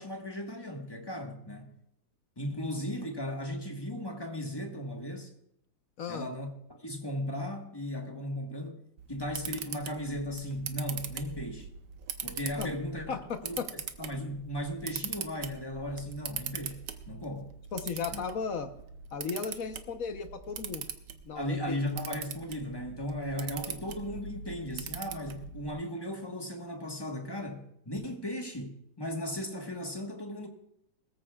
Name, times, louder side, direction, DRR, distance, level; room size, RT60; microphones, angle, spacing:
voice 1, 0.0-1.7 2.4-5.3 6.1-11.7 12.2-13.1 13.4-13.6 14.0-17.5 18.1-18.2 21.3-30.5, equal, 15° left, 1.2 m, -36 dB
voice 2, 6.0-6.3 12.6-12.7 13.1-13.7 17.7-18.7 19.1-20.9 21.2-21.8, left 5 dB, 55° left, 1.3 m, -35 dB
Camera, 9.0-25.7, right 8 dB, 75° right, 1.5 m, -42 dB
21.5 x 14.0 x 2.4 m
omnidirectional pair, 1.9 m